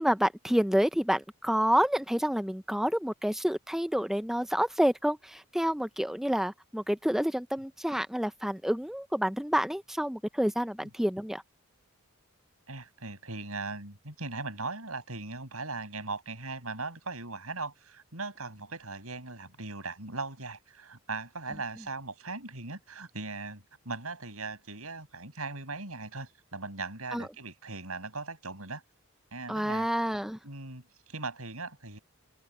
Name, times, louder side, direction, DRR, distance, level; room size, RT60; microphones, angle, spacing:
voice 1, 0.0-11.4 27.1-27.3 29.5-30.4, equal, ahead, 0.4 m, -28 dB
voice 2, 12.7-28.8 29.3-29.9 30.4-32.0, right 3 dB, 80° right, 7.3 m, -39 dB
head